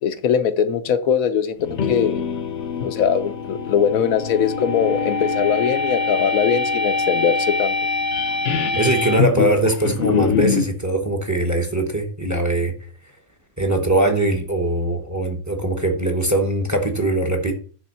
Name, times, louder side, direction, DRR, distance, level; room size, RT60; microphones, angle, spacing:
voice 1, 0.0-1.6 1.9-2.2 2.8-7.8, left 7 dB, 90° left, 1.2 m, -21 dB
sound 1, 1.6-10.7, left 4 dB, 60° left, 1.0 m, -23 dB
voice 2, 8.7-12.7 13.6-17.5, right 2 dB, 15° right, 0.9 m, -21 dB
10.0 x 3.7 x 5.6 m
omnidirectional pair, 1.4 m